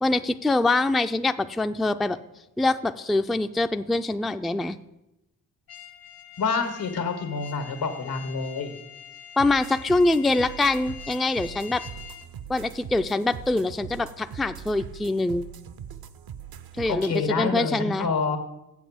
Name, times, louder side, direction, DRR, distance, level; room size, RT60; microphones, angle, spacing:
voice 1, 0.0-2.2 2.6-4.8 9.4-11.8 12.5-15.5 16.8-18.1, left 2 dB, ahead, 10 dB, 0.3 m, -24 dB
sound 1, 5.7-12.3, left 9 dB, 70° left, 1.4 m, -45 dB
voice 2, 6.4-8.7 16.9-18.4, left 5 dB, 85° left, 7 dB, 1.7 m, -27 dB
sound 2, 9.4-17.2, right 8 dB, 75° right, 0.7 m, -41 dB
7.4 x 7.3 x 7.7 m, 0.91 s
cardioid pair, 75°, 37 cm